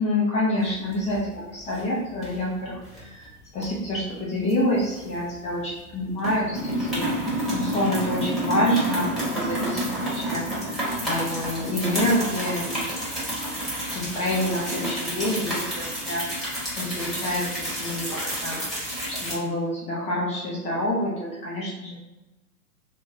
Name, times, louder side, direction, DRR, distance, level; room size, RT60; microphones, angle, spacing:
voice 1, 0.0-9.8 10.1-12.9 13.9-16.4 16.8-21.9, left 1 dB, 15° left, -6 dB, 0.6 m, -27 dB
sound 1, 0.7-1.3 1.6-1.8 2.2-3.0 3.6-5.5 5.8-5.9 6.2-19.3, right 1 dB, ahead, 1.2 m, -29 dB
2.7 x 2.3 x 3.9 m, 1.1 s
hypercardioid pair, 115°, 44 cm